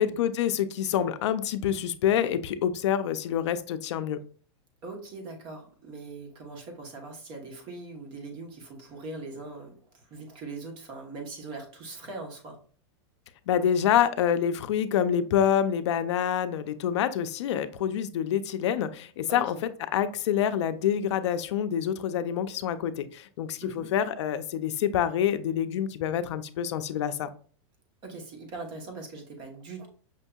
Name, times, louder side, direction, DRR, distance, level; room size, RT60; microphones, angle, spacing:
voice 1, 0.0-4.2 13.5-19.6 19.9-27.3, left 9 dB, 75° left, 11 dB, 0.4 m, -27 dB
voice 2, 4.8-12.6 19.3-19.5 23.6-23.9 28.0-29.9, right 3 dB, 30° right, 3 dB, 0.9 m, -41 dB
5.7 x 2.6 x 2.3 m, 0.43 s
supercardioid pair, 160°, 15 cm